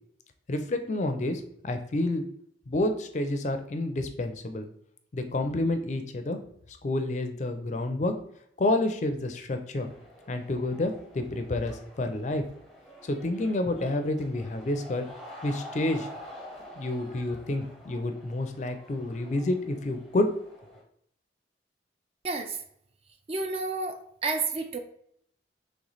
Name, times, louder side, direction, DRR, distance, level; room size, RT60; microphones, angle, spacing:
voice 1, 0.5-2.2 2.7-4.7 5.1-6.4 6.8-8.1 8.6-9.9 10.3-12.4 13.0-15.0 15.4-16.1 16.8-20.3, left 2 dB, 40° left, 7 dB, 0.4 m, -29 dB
sound 1, 9.7-20.8, equal, ahead, 0.7 m, -48 dB
voice 2, 22.2-22.6 23.3-24.8, right 3 dB, 35° right, 6 dB, 0.4 m, -30 dB
3.3 x 3.1 x 3.9 m, 0.70 s
head